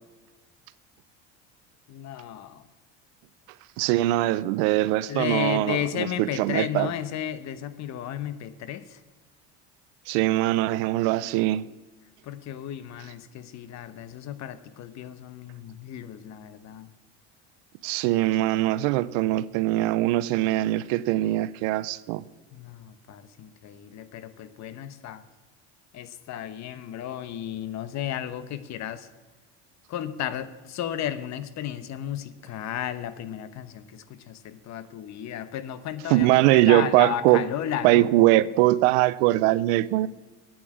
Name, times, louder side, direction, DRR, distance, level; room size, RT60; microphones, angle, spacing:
voice 1, 1.9-2.7 5.1-9.0 12.2-16.9 22.5-25.2 25.9-29.1 29.9-38.1, left 10 dB, 50° left, 1.0 m, -34 dB
voice 2, 3.8-6.9 10.1-11.6 17.8-22.3 36.1-37.4 37.8-40.1, right 16 dB, 75° right, 0.6 m, -22 dB
8.8 x 8.7 x 7.4 m
supercardioid pair, 90°, 35 cm